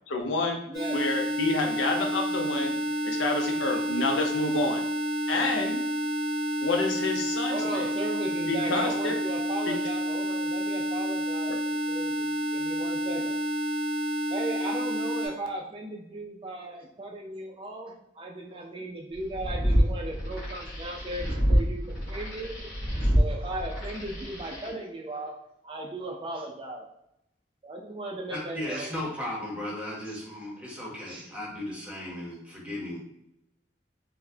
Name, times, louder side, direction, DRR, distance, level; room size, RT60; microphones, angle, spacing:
voice 1, 0.1-0.6 0.9-2.7 3.0-4.8 5.3-5.8 6.6-7.8 8.5-9.2 9.7-9.8, left 3 dB, 90° left, 2 dB, 0.6 m, -28 dB
sound 1, 0.7-15.3, equal, 30° left, 1.2 m, -29 dB
voice 2, 0.7-1.0 7.5-11.5 11.9-13.4 14.3-22.6 23.0-25.4 25.6-26.8 27.6-28.9 31.1-31.3, right 1 dB, 25° right, 1 dB, 0.3 m, -37 dB
sound 2, 19.2-24.7, equal, 60° left, 1.3 m, -27 dB
voice 3, 28.3-33.0, left 1 dB, 5° right, -5 dB, 0.8 m, -36 dB
3.9 x 2.1 x 2.7 m, 0.81 s
head